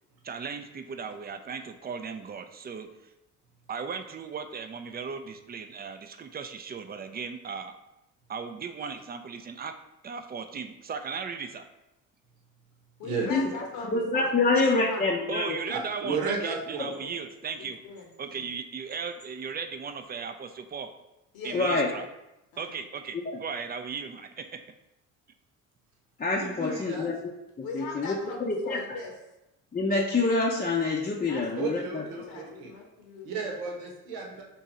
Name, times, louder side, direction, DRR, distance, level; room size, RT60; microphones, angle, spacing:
voice 1, 0.2-2.9 3.7-7.7 8.3-9.7 10.0-11.6 15.3-17.8 18.2-20.9 21.4-22.1 22.6-24.6, right 5 dB, 25° right, 8 dB, 0.4 m, -36 dB
voice 2, 13.0-15.0 17.0-17.2 17.6-18.4 21.3-21.6 22.5-22.8 27.6-29.1 31.3-31.7 32.3-33.5 34.3-34.4, left 4 dB, 70° left, 1 dB, 1.1 m, -41 dB
voice 3, 13.9-15.6 21.5-21.9 23.1-23.4 26.2-27.3 27.6-28.2 28.5-28.8 29.7-32.0, left 3 dB, 25° left, -3 dB, 0.6 m, -26 dB
voice 4, 15.7-16.9 26.4-27.1 31.6-32.7 33.2-34.4, right 4 dB, 80° right, 0 dB, 0.9 m, -33 dB
3.6 x 2.8 x 4.1 m, 0.91 s
supercardioid pair, 65°, 37 cm